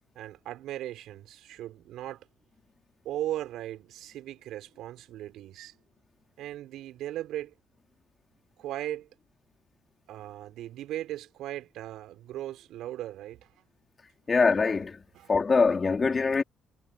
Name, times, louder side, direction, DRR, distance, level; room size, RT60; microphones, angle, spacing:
voice 1, 0.1-2.3 3.0-5.8 6.4-7.5 8.6-9.1 10.1-13.5 15.1-15.4, right 13 dB, 80° right, 5.8 m, -38 dB
voice 2, 14.3-15.0 15.3-16.4, left 4 dB, 30° left, 3.3 m, -23 dB
cardioid pair, 95°, 0 cm